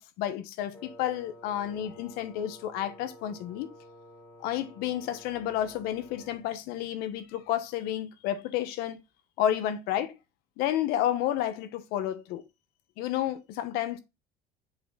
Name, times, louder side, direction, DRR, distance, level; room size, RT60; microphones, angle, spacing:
voice 1, 0.0-3.7 4.4-9.0 9.4-10.2 10.6-12.4 13.0-14.0, left 11 dB, 80° left, 1.3 m, -31 dB
Wind instrument woodwind instrument, 0.7-6.5, left 1 dB, 15° left, 2.1 m, -51 dB
7.2 x 3.6 x 5.7 m
cardioid pair, 100°, 16 cm